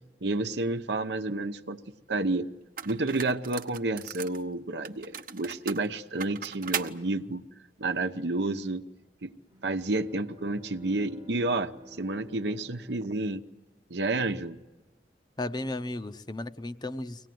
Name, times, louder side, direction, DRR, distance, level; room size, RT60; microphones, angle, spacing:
voice 1, 0.2-1.8 2.1-2.5 2.8-7.4 7.8-8.8 9.2-9.3 9.6-13.4 13.9-14.6, right 2 dB, 75° right, 9 dB, 1.0 m, -30 dB
sound 1, 2.1-2.2 2.8-4.4 4.8-7.0, right 7 dB, 50° right, 1.0 m, -37 dB
Bowed string instrument, 9.5-14.1, left 1 dB, 20° right, 1.1 m, -51 dB
voice 2, 15.4-17.3, left 2 dB, 25° left, 11 dB, 0.8 m, -34 dB
24.5 x 18.5 x 9.4 m, 1.2 s
head